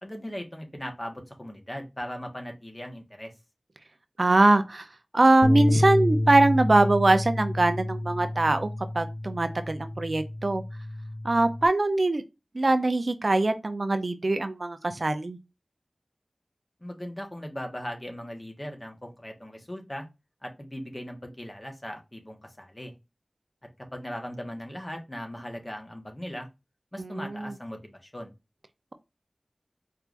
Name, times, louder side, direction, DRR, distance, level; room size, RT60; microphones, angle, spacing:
voice 1, 0.0-3.3 16.8-20.1 20.4-22.9 23.9-26.5 26.9-28.3, equal, 30° left, 1.3 m, -38 dB
voice 2, 4.2-4.9 5.1-8.7 8.9-10.6 11.2-12.2 12.5-15.4 27.0-27.5, right 2 dB, 65° right, 0.5 m, -22 dB
Bass guitar, 5.4-11.7, left 1 dB, 65° left, 0.4 m, -29 dB
4.5 x 3.3 x 2.5 m
wide cardioid pair, 45°, 0 cm